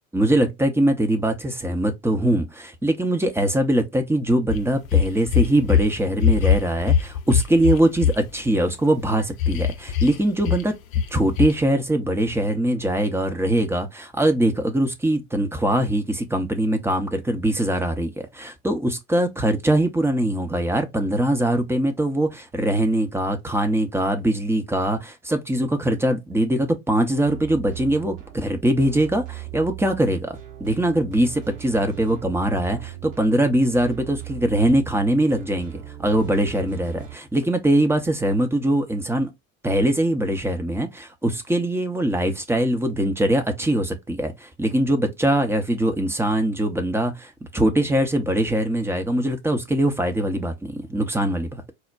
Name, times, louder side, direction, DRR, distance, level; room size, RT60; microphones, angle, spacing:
voice 1, 0.1-10.8 11.1-39.3 39.6-51.7, right 1 dB, 5° right, 0.6 m, -22 dB
sound 1, 4.5-5.9 6.2-8.1 9.4-10.1 10.4-10.6 10.9-11.1 11.4-11.5, left 8 dB, 70° left, 0.6 m, -20 dB
sound 2, 27.2-37.1, right 16 dB, 60° right, 1.4 m, -39 dB
4.3 x 2.1 x 2.4 m
figure-of-eight pair, 70°, 42 cm